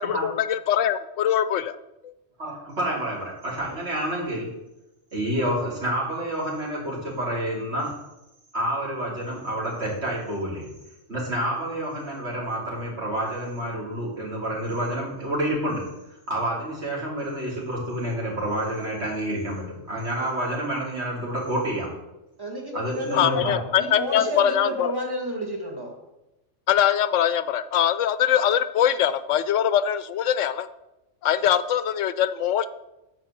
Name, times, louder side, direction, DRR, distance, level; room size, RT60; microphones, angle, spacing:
voice 1, 0.0-1.8 23.1-24.9 26.7-30.7 31.2-32.7, left 10 dB, 80° left, 14 dB, 0.9 m, -22 dB
voice 2, 2.4-4.5 5.1-7.9 8.5-10.7 11.1-15.8 16.3-21.9 22.7-23.6, right 1 dB, 60° right, -5 dB, 3.4 m, -28 dB
voice 3, 22.4-26.0, left 1 dB, 20° right, 0 dB, 2.0 m, -31 dB
10.5 x 4.7 x 7.4 m, 0.95 s
omnidirectional pair, 1.3 m